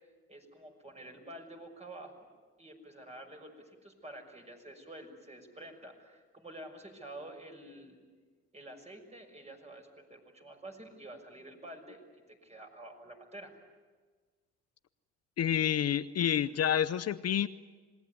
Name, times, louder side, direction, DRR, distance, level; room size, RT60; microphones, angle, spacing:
voice 1, 0.3-2.3 2.6-8.0 8.5-12.0 12.3-13.5, right 1 dB, 20° right, 3 dB, 6.2 m, -49 dB
voice 2, 15.4-17.5, left 9 dB, 55° left, 12 dB, 0.8 m, -28 dB
26.5 x 20.5 x 9.5 m, 1.4 s
cardioid pair, 90°, 30 cm